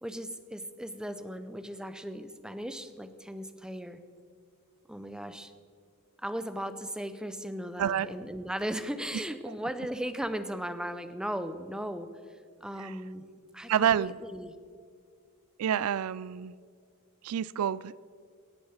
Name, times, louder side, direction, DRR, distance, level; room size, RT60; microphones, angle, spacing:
voice 1, 0.0-4.0 4.9-5.5 6.2-12.1 12.6-13.3 13.5-14.5, equal, 5° right, 11 dB, 0.6 m, -37 dB
voice 2, 13.7-14.2 15.6-16.5 17.2-18.0, right 9 dB, 90° right, 20 dB, 0.4 m, -28 dB
18.0 x 7.0 x 5.7 m, 2.1 s
head